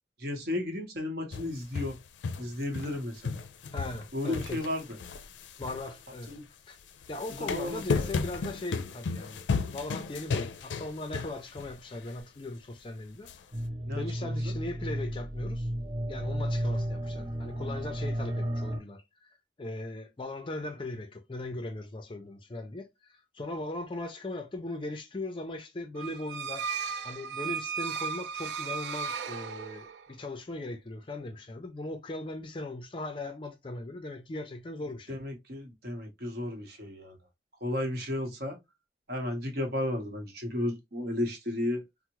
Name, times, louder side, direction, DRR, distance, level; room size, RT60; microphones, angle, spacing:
voice 1, 0.2-2.0 2.4-3.4 4.1-5.0 6.3-6.4 7.4-8.1 13.9-14.5 35.1-37.2 37.6-38.6 39.1-41.8, left 1 dB, 55° right, 0.9 m, -34 dB
sound 1, 1.3-3.0 3.2-6.4 7.0-11.7 12.1-12.2 13.3-13.4, left 4 dB, 90° left, 0.4 m, -34 dB
voice 2, 3.7-4.7 5.6-6.4 6.7-6.8 7.1-9.4 9.7-13.3 14.0-15.7 16.1-26.7 27.0-35.2, left 2 dB, 30° left, 0.4 m, -39 dB
sound 2, 13.5-18.8, equal, 25° right, 0.6 m, -33 dB
sound 3, 26.0-30.1, right 6 dB, 75° right, 0.3 m, -35 dB
3.4 x 2.0 x 2.9 m
head